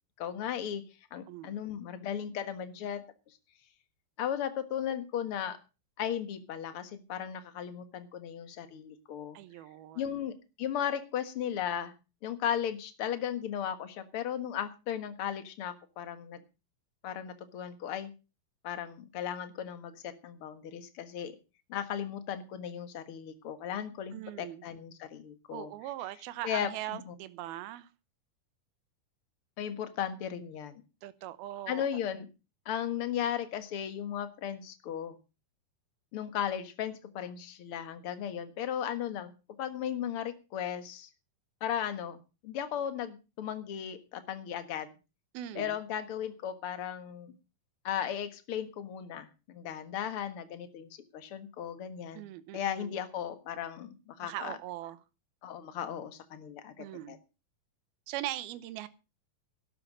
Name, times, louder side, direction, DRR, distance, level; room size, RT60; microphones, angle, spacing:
voice 1, 0.2-0.8 1.1-3.0 4.2-5.6 6.0-9.4 10.0-11.9 12.2-16.4 17.0-18.1 18.6-21.4 21.7-25.7 26.4-27.1 29.6-30.8 31.7-32.3 32.7-35.2 36.1-39.3 39.6-41.1 41.6-44.9 45.5-47.3 47.8-52.3 52.5-54.5 55.4-57.2, left 9 dB, 50° left, 1.9 m, -36 dB
voice 2, 1.3-1.6 9.3-10.2 24.1-24.6 25.5-27.9 31.0-31.9 45.3-45.8 52.1-53.0 54.2-55.0 56.8-57.2 58.1-58.9, right 14 dB, 85° right, 2.8 m, -40 dB
12.0 x 10.5 x 6.1 m
omnidirectional pair, 4.2 m